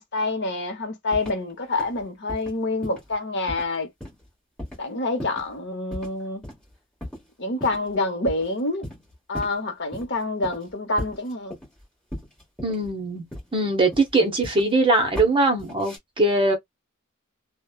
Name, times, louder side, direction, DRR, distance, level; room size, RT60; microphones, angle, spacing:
voice 1, 0.0-3.9 4.8-6.4 7.4-8.8 9.3-11.5, left 2 dB, 55° left, 0.8 m, -27 dB
sound 1, 1.1-1.5 1.8-2.0 2.3-2.5 2.8-3.1 3.5-3.7 4.0-4.3 4.6-4.8 5.2-5.5 5.9-6.1 6.4-6.6 7.0-7.2 7.6-7.9 8.3-8.5 8.8-9.6 9.9-10.1 10.4-10.7 11.0-11.8 12.1-12.9 13.3-13.6 13.9-14.8 15.1-15.3 15.6-16.0, left 1 dB, 5° left, 1.6 m, -36 dB
voice 2, 12.6-13.3 13.5-16.6, right 2 dB, 25° right, 0.8 m, -21 dB
3.1 x 2.1 x 2.3 m
head